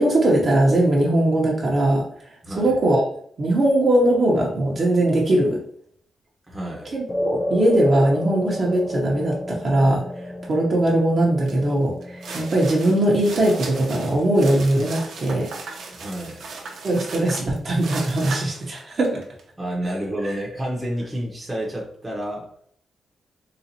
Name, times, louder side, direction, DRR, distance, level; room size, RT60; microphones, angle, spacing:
voice 1, 0.0-2.0 2.6-3.0 3.4-5.6 6.9-10.0 10.5-15.5 16.8-19.2, right 1 dB, 45° right, -3 dB, 0.8 m, -20 dB
voice 2, 2.4-2.8 6.5-6.9 15.9-16.4 19.6-22.5, right 1 dB, 10° right, -2 dB, 0.8 m, -29 dB
sound 1, 7.1-15.6, equal, 15° left, 0.3 m, -32 dB
sound 2, 11.5-11.6 12.0-19.4, right 4 dB, 80° right, 0.7 m, -37 dB
3.9 x 2.5 x 2.8 m, 0.63 s
cardioid pair, 120°, 0 cm